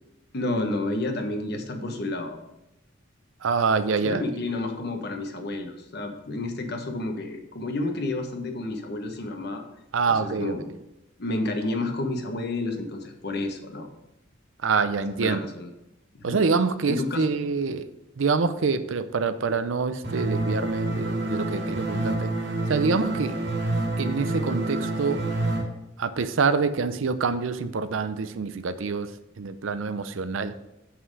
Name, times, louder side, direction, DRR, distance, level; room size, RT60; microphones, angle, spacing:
voice 1, 0.3-2.4 4.0-9.6 10.2-10.7 11.2-13.9 15.2-15.7 16.1-16.4 16.9-17.4, left 2 dB, 55° left, 5 dB, 1.1 m, -30 dB
voice 2, 3.4-4.2 9.9-10.6 14.6-15.4 16.2-17.9 18.2-22.3 22.7-23.4 24.0-25.2 26.0-30.5, right 4 dB, 90° right, 12 dB, 0.6 m, -26 dB
sound 1, 20.0-25.6, right 2 dB, 70° right, 2.0 m, -28 dB
7.6 x 5.8 x 4.8 m, 0.94 s
head